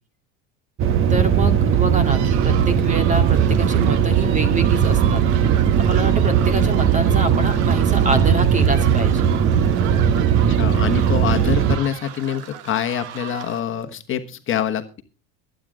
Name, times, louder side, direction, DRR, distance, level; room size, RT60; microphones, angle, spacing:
sound 1, 0.8-11.8, right 8 dB, 40° right, 1.2 m, -18 dB
voice 1, 1.1-9.3, right 2 dB, 20° right, 8 dB, 2.1 m, -26 dB
sound 2, 2.0-13.6, right 11 dB, 85° right, 1.5 m, -36 dB
voice 2, 10.6-15.0, left 9 dB, 40° left, 7 dB, 1.4 m, -25 dB
21.5 x 9.2 x 3.7 m, 0.33 s
supercardioid pair, 120°, 33 cm